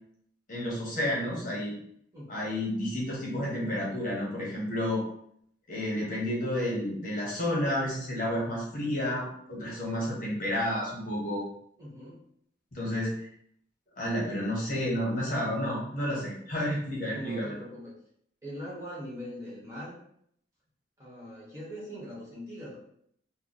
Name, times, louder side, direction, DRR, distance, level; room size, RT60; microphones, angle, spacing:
voice 1, 0.5-1.7 2.3-5.0 5.7-11.4 12.7-13.3 14.0-17.5, left 1 dB, 45° left, -5 dB, 1.2 m, -31 dB
voice 2, 11.8-12.2 17.1-18.0 18.4-20.0 21.0-22.8, equal, 15° right, -8 dB, 1.3 m, -41 dB
3.3 x 2.2 x 4.0 m, 0.68 s
head